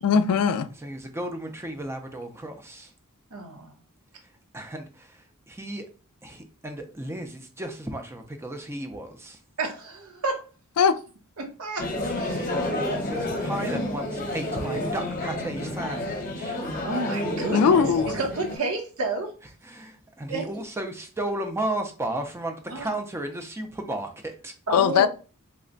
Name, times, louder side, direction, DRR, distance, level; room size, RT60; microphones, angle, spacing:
voice 1, 0.0-0.7 10.8-11.0 17.5-18.1 24.7-25.1, left 6 dB, 90° left, 0.4 m, -20 dB
voice 2, 0.8-2.9 4.5-5.8 6.2-9.4 13.1-16.6 19.6-24.5, right 1 dB, 10° right, 0.5 m, -34 dB
voice 3, 3.3-3.7 9.6-10.4 11.4-11.9 12.2-12.8 16.8-19.3 20.3-20.5 22.7-22.9 24.7-25.1, right 3 dB, 70° right, 1.0 m, -31 dB
sound 1, 11.8-18.6, left 1 dB, 40° left, 0.8 m, -29 dB
3.2 x 2.2 x 3.8 m
head